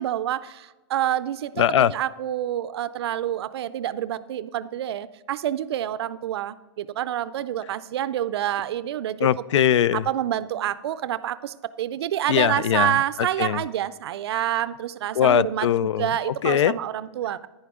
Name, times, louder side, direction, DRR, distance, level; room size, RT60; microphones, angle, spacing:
voice 1, 0.0-1.5 1.9-9.3 9.9-15.7 16.0-17.5, right 12 dB, 60° right, 14 dB, 0.4 m, -27 dB
voice 2, 1.6-1.9 9.2-10.1 12.3-13.0 13.4-13.6 15.1-16.1 16.4-16.7, left 10 dB, 85° left, 21 dB, 0.4 m, -20 dB
11.0 x 10.0 x 3.6 m, 1.2 s
hypercardioid pair, 165°, 15 cm